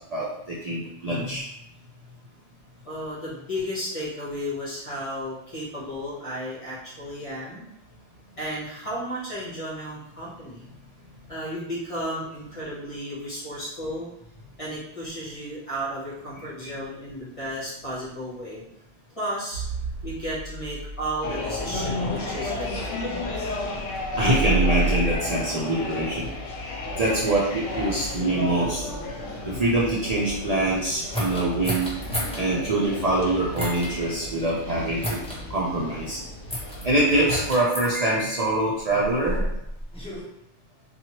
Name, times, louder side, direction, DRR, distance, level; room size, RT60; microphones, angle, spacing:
voice 1, 0.1-1.5 16.6-16.7 24.2-26.3 27.0-28.8 29.4-31.9 32.3-35.2 35.5-36.2 36.8-39.4, right 2 dB, 50° right, -6 dB, 0.5 m, -24 dB
voice 2, 2.8-7.7 8.4-10.7 11.3-14.1 14.6-18.6 19.2-19.6 20.0-23.1, equal, 30° left, -7 dB, 0.8 m, -33 dB
sound 1, 19.5-25.2, right 2 dB, 65° right, 0.9 m, -31 dB
sound 2, 21.2-37.5, left 2 dB, 75° left, 0.9 m, -33 dB
sound 3, 31.1-32.4 33.5-33.9 35.0-35.4 36.5-36.8 37.3-37.9 38.8-40.2, equal, 10° left, 0.3 m, -31 dB
2.9 x 2.4 x 2.8 m, 0.80 s
omnidirectional pair, 1.3 m